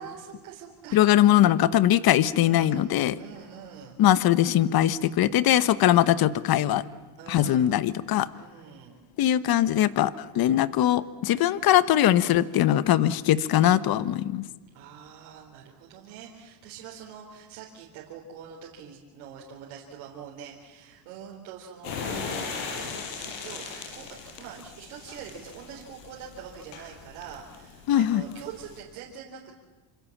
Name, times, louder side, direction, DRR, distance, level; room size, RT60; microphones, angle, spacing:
voice 1, 0.0-1.0 2.4-2.9 3.2-4.0 7.2-7.7 8.3-9.0 12.1-12.3 14.7-24.1 24.4-29.6, right 8 dB, 85° right, -2 dB, 4.3 m, -44 dB
voice 2, 0.9-3.1 4.0-6.8 7.3-8.3 9.2-14.5 27.9-28.2, left 12 dB, 50° left, 15 dB, 1.3 m, -21 dB
sound 1, 21.8-28.8, left 5 dB, 80° left, 6.4 m, -39 dB
28.5 x 26.5 x 7.4 m, 1.2 s
supercardioid pair, 110°, 45 cm